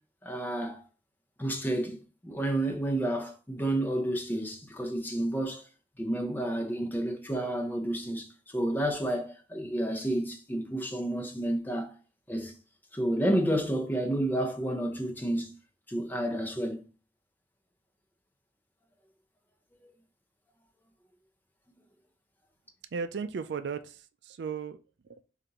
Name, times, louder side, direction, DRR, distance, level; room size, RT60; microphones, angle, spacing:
voice 1, 0.2-0.8 1.4-5.6 6.0-11.9 12.3-12.6 12.9-15.5 15.9-16.8 19.8-19.9, right 1 dB, 10° left, 0.7 m, -30 dB
voice 2, 22.9-25.2, right 5 dB, 75° right, 0.4 m, -36 dB
6.7 x 2.6 x 2.9 m
head